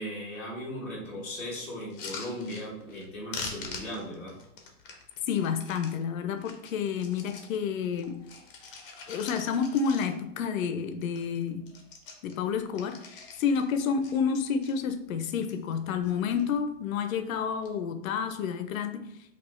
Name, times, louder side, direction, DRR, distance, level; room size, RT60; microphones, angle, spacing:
voice 1, 0.0-4.4, equal, 5° left, -11 dB, 0.9 m, -37 dB
sound 1, 1.8-3.1 3.3-5.9 6.4-7.6 7.9-10.4 10.7-10.8 11.1-11.4 11.6-13.7 14.0-14.7 15.3-15.8 16.0-16.6 17.4-17.7, left 4 dB, 40° left, 0.6 m, -44 dB
voice 2, 5.3-8.2 9.1-11.7 12.2-19.1, left 6 dB, 85° left, 8 dB, 0.5 m, -29 dB
4.8 x 2.4 x 2.4 m, 0.77 s
supercardioid pair, 180°, 40 cm